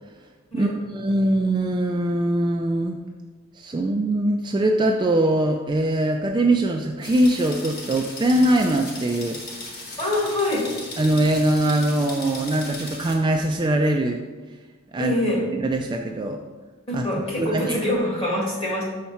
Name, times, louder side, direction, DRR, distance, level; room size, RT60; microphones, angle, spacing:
voice 1, 0.5-3.0 3.5-9.4 11.0-14.2 14.9-15.1 15.5-16.4 16.9-17.0 17.4-17.8, right 1 dB, 20° right, 3 dB, 0.3 m, -22 dB
sound 1, 7.0-13.1, left 2 dB, 45° left, 1.3 m, -37 dB
voice 2, 10.0-10.7 15.0-15.5 16.9-18.8, left 1 dB, 25° left, -3 dB, 1.8 m, -24 dB
5.7 x 4.2 x 5.6 m, 1.3 s
head